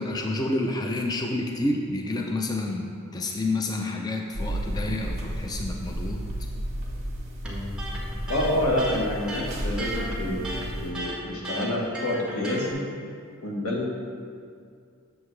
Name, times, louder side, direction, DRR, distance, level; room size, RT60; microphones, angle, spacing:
voice 1, 0.0-6.2, left 2 dB, 20° left, 1 dB, 0.4 m, -29 dB
sound 1, 4.3-10.9, equal, 35° right, 1.1 m, -33 dB
Electric guitar, 7.4-12.7, right 1 dB, 5° right, 1.2 m, -35 dB
voice 2, 8.3-10.5 10.8-12.8 13.4-13.9, left 1 dB, 90° left, -2 dB, 1.4 m, -28 dB
7.6 x 7.0 x 3.2 m, 2.3 s
head